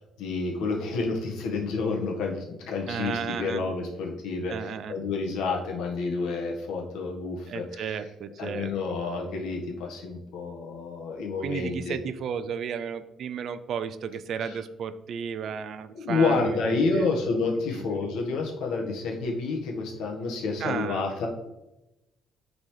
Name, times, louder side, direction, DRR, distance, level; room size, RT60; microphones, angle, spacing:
voice 1, 0.2-8.0 8.4-12.0 14.3-14.6 15.9-21.3, left 3 dB, 85° left, 0 dB, 1.5 m, -29 dB
voice 2, 2.9-3.6 4.5-5.0 7.5-8.7 11.4-17.1 17.7-17.9 20.6-21.1, right 7 dB, 50° right, 13 dB, 0.4 m, -33 dB
9.6 x 4.0 x 3.3 m, 0.96 s
cardioid pair, 155°, 0 cm